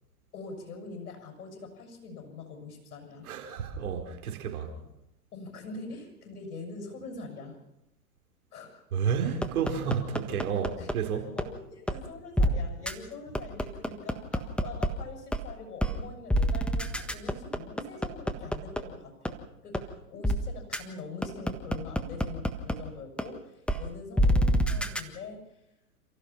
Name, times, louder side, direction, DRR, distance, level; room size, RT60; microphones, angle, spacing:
voice 1, 0.3-3.3 5.3-7.6 8.5-8.8 10.1-10.2 10.8-10.9 11.3-25.6, left 3 dB, 70° left, 7.1 m, -43 dB
voice 2, 3.2-4.7 8.9-11.4, right 7 dB, 65° right, 4.7 m, -31 dB
sound 1, 9.4-10.9 11.4-11.5 11.9-12.0 12.4-12.5 12.9-13.0 13.3-14.9 15.3-15.4 15.8-15.9 16.3-18.8 19.3-19.4 19.7-19.8 20.2-20.4 20.7-20.8 21.2-22.7 23.2-23.3 23.7-23.8 24.2-25.0, equal, ahead, 1.5 m, -25 dB
29.5 x 15.5 x 5.8 m
hypercardioid pair, 115°, 46 cm